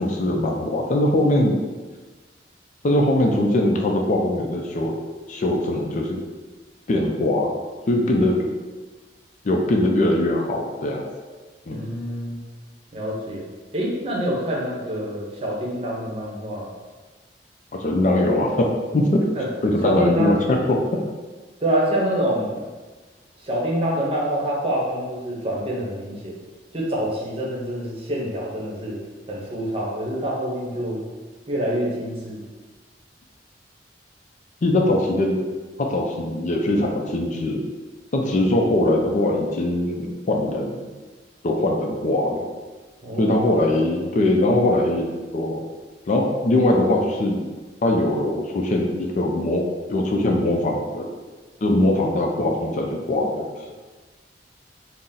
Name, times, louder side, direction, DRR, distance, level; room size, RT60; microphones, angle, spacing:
voice 1, 0.0-1.6 2.8-4.9 5.3-6.2 6.9-7.6 7.9-8.5 9.4-11.0 11.7-11.9 17.7-19.2 19.6-21.0 34.6-35.4 35.8-37.6 38.1-40.9 41.4-42.5 43.2-45.6 46.1-47.5 47.8-51.1 51.6-53.5, left 1 dB, 45° left, 1 dB, 0.4 m, -21 dB
voice 2, 11.7-12.4 12.9-13.5 13.7-16.7 19.4-19.5 19.8-20.4 21.6-22.6 23.4-26.4 26.7-29.0 29.3-31.0 31.5-32.4 43.0-43.4, right 1 dB, 35° right, -4 dB, 0.8 m, -26 dB
4.1 x 2.0 x 3.7 m, 1.3 s
head